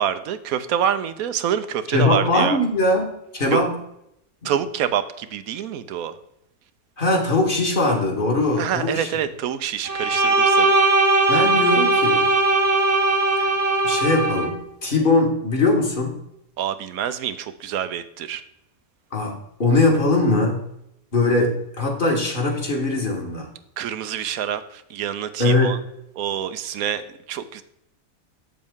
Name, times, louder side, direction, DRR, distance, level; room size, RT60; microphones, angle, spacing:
voice 1, 0.0-2.6 3.5-3.6 4.4-6.1 8.6-10.7 16.6-18.4 23.8-25.8 26.2-27.6, right 9 dB, 85° right, 11 dB, 1.1 m, -26 dB
voice 2, 1.9-3.1 3.3-3.7 4.4-4.5 7.0-9.1 11.3-12.2 13.4-13.5 13.8-16.2 19.1-20.6 21.1-23.5 25.4-25.8, left 2 dB, 40° left, 1 dB, 1.6 m, -21 dB
Bowed string instrument, 9.9-14.5, right 2 dB, 35° right, 0.6 m, -19 dB
7.6 x 7.2 x 3.6 m, 0.79 s
omnidirectional pair, 1.5 m